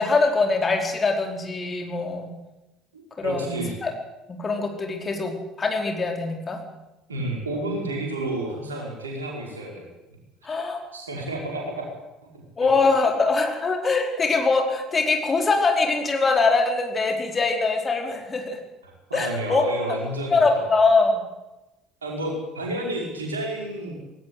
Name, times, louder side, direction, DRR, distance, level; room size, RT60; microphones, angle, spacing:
voice 1, 0.0-2.3 3.2-3.9 4.3-6.6 10.4-10.8 12.6-18.6 19.1-19.6 20.3-21.2, left 3 dB, 25° left, 3 dB, 4.7 m, -23 dB
voice 2, 2.9-3.7 7.1-10.2 10.5-10.6 10.9-11.9 12.3-12.7 19.1-20.7 22.0-23.9, right 1 dB, 80° right, -1 dB, 5.5 m, -31 dB
18.5 x 18.0 x 8.2 m, 0.97 s
figure-of-eight pair, 60°, 0 cm